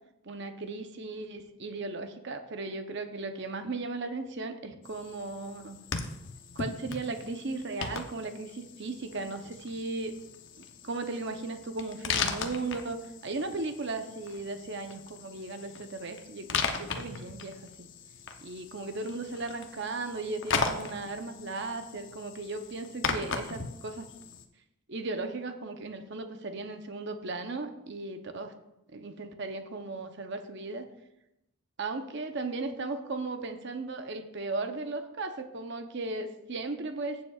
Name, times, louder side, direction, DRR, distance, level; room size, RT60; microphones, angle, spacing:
voice 1, 0.2-5.8 6.5-10.1 10.6-17.9 18.4-24.1 24.9-28.5 28.9-30.9 31.8-37.2, right 3 dB, 50° right, 6 dB, 0.8 m, -36 dB
sound 1, 4.8-24.4, left 5 dB, 55° left, 0.8 m, -38 dB
15.5 x 7.3 x 2.4 m, 0.87 s
head